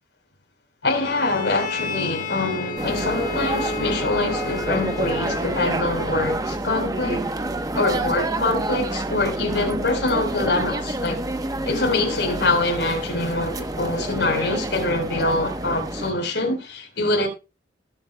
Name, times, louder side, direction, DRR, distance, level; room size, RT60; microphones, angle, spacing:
voice 1, 0.8-7.3 7.7-11.2 11.7-17.3, left 2 dB, 80° left, 4.1 m, -24 dB
Bowed string instrument, 1.0-5.6, left 4 dB, 50° left, 1.4 m, -32 dB
sound 1, 2.8-16.1, right 2 dB, 20° right, 0.9 m, -28 dB
19.5 x 8.1 x 2.2 m
head